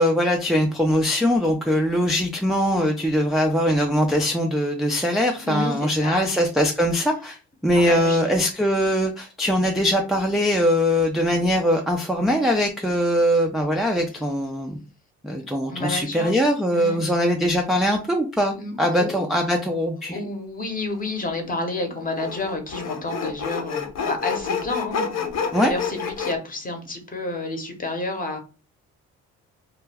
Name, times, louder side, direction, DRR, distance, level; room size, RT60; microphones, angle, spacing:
voice 1, 0.0-7.4 7.6-14.8 15.2-20.2 25.5-25.7, equal, ahead, 1 dB, 0.3 m, -21 dB
voice 2, 5.4-6.3 7.7-8.2 15.7-16.4 16.7-17.0 18.6-19.2 20.1-28.4, left 2 dB, 30° left, 4 dB, 0.8 m, -30 dB
Sawing, 21.0-21.1 22.2-26.3, left 6 dB, 60° left, 0.7 m, -28 dB
2.2 x 2.2 x 3.3 m, 0.34 s
cardioid pair, 90°, 30 cm